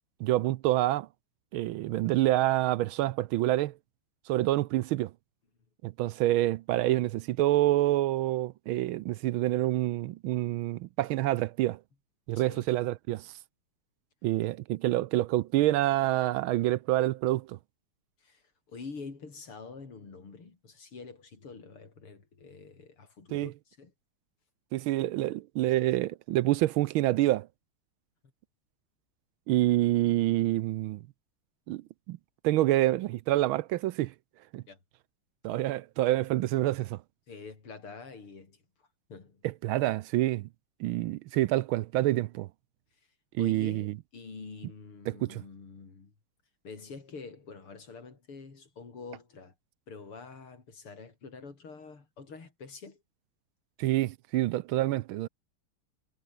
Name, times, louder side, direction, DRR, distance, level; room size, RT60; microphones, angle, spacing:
voice 1, 0.2-1.1 1.5-3.8 4.3-5.1 5.8-11.8 12.3-13.3 14.2-17.6 23.3-23.5 24.7-27.5 29.5-31.0 31.7-32.2 32.4-34.1 34.5-34.6 35.4-37.0 39.4-40.5 40.8-42.5 43.4-43.9 45.2-45.4 53.8-55.3, right 15 dB, 75° right, 1.4 m, -27 dB
voice 2, 12.3-12.7 18.2-23.9 34.7-34.8 35.5-35.6 37.3-39.4 43.4-46.1 46.6-49.5 49.9-53.0, left 4 dB, 75° left, 5.0 m, -46 dB
omnidirectional pair, 2.4 m